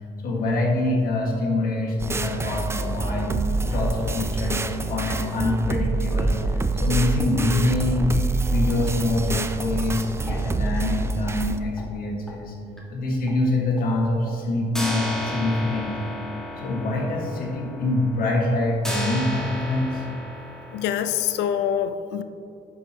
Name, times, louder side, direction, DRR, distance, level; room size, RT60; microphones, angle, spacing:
voice 1, 0.2-8.2 8.5-12.5 12.9-16.2 16.6-20.0, left 2 dB, 60° left, -1 dB, 1.7 m, -25 dB
sound 1, 2.0-11.6, right 3 dB, 15° right, 0.4 m, -26 dB
sound 2, 10.3-10.4 10.8-10.9 11.3-11.4 11.8-11.9 12.3-12.4 12.8-12.9 13.3-13.4 13.8-13.9 14.3-14.4 14.7-21.4, equal, 5° left, 1.7 m, -34 dB
voice 2, 20.7-22.2, left 9 dB, 90° left, 10 dB, 0.6 m, -25 dB
10.5 x 7.6 x 2.9 m, 2.9 s
cardioid pair, 110°, 17 cm